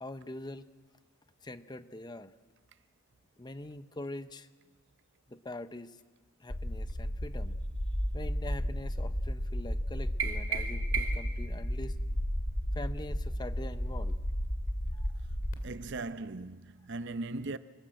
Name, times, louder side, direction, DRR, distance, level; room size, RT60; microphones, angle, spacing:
voice 1, 0.0-0.7 1.4-2.3 3.4-4.5 5.3-6.0 6.4-7.6 8.1-12.0 12.7-14.2 14.9-15.1, left 1 dB, 20° left, 0.6 m, -43 dB
sound 1, 6.5-15.5, equal, 65° left, 2.7 m, -33 dB
sound 2, 10.2-11.4, right 6 dB, 70° right, 2.5 m, -34 dB
voice 2, 15.6-17.6, right 2 dB, 55° right, 0.6 m, -38 dB
24.0 x 19.5 x 7.7 m
head